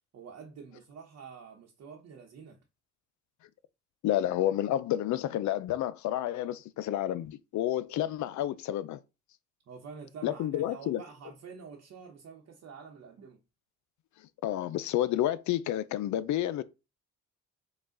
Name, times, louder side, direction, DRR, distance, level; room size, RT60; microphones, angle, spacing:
voice 1, 0.1-2.6 9.7-13.4, right 6 dB, 60° right, 1.0 m, -47 dB
voice 2, 4.0-9.0 10.2-11.0 14.4-16.6, left 12 dB, 70° left, 0.5 m, -30 dB
5.0 x 2.4 x 3.8 m
cardioid pair, 90°, 30 cm